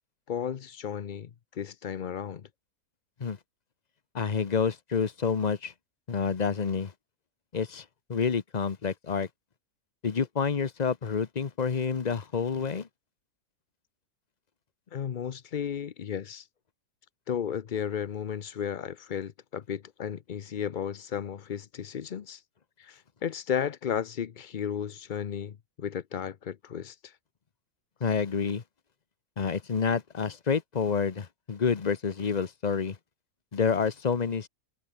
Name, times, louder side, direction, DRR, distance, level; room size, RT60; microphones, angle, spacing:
voice 1, 0.3-2.5 14.9-16.5 17.3-22.4 22.8-27.2, left 8 dB, 65° left, 0.5 m, -34 dB
voice 2, 4.1-5.7 6.1-6.9 7.5-9.3 10.0-12.9 28.0-28.6 29.4-33.0 33.5-34.5, left 6 dB, 35° left, 0.8 m, -28 dB
omnidirectional pair, 1.7 m